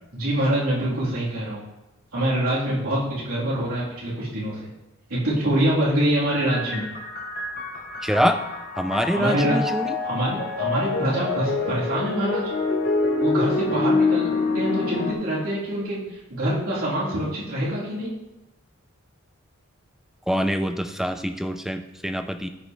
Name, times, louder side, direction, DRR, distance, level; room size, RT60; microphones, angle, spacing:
voice 1, 0.1-1.6 2.1-4.6 5.1-6.9 9.1-9.5 10.0-12.5 13.2-18.1, right 1 dB, 80° right, -8 dB, 3.4 m, -25 dB
sound 1, 6.3-15.1, left 3 dB, 45° left, 1.1 m, -26 dB
voice 2, 8.0-8.4 8.8-10.0 20.3-22.5, equal, ahead, 7 dB, 0.4 m, -25 dB
14.0 x 5.5 x 3.2 m, 0.94 s
head